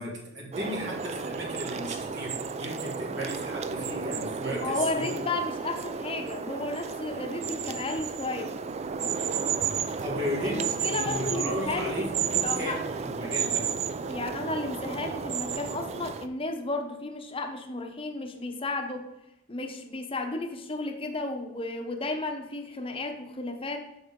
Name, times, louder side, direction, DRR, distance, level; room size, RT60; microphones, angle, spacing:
voice 1, 0.0-5.1 10.0-13.7, equal, 60° right, -2 dB, 2.0 m, -35 dB
sound 1, 0.5-16.3, right 6 dB, 30° right, 0.3 m, -32 dB
voice 2, 4.5-8.5 10.4-11.9 12.4-12.8 14.1-19.1 19.5-23.9, left 2 dB, 25° left, 5 dB, 0.8 m, -33 dB
6.7 x 6.2 x 3.7 m, 0.90 s
head